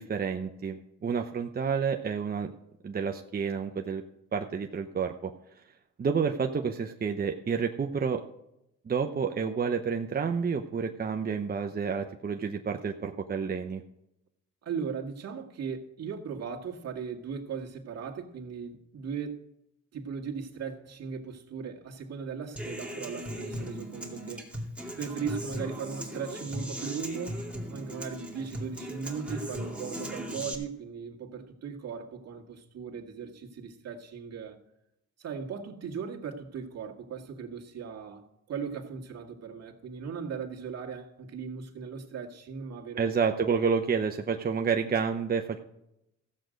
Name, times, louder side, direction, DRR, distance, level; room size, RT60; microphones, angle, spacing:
voice 1, 0.0-2.5 2.8-4.0 4.3-5.3 6.0-8.2 8.9-13.8 43.0-45.6, right 6 dB, 30° right, 0.8 m, -29 dB
voice 2, 14.6-19.4 19.9-24.5 25.0-27.4 27.7-34.6 35.2-43.1, right 6 dB, 55° right, 2.0 m, -38 dB
Human voice / Acoustic guitar, 22.6-30.5, equal, 5° right, 2.5 m, -38 dB
15.0 x 7.8 x 5.1 m
cardioid pair, 90°, 30 cm